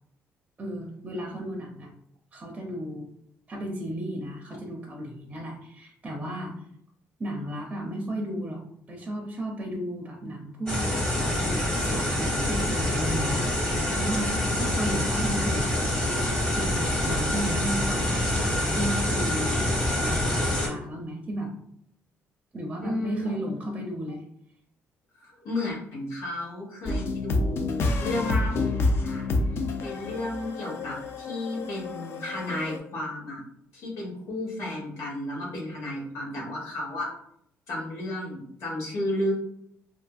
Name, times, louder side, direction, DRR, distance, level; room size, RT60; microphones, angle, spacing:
voice 1, 0.6-1.9 2.3-3.1 3.5-6.5 7.2-8.6 8.9-15.9 16.5-21.5 22.5-24.3, right 1 dB, 20° right, 0 dB, 0.4 m, -34 dB
sound 1, 10.7-20.7, left 1 dB, 15° left, 0.7 m, -26 dB
voice 2, 22.8-23.8 25.2-28.7 29.0-29.3 29.8-33.4 33.7-37.1 37.7-39.3, left 1 dB, 85° left, -3 dB, 1.1 m, -33 dB
sound 2, 26.9-32.8, left 2 dB, 55° left, 0.4 m, -28 dB
2.6 x 2.5 x 2.3 m, 0.70 s
cardioid pair, 125°, 5 cm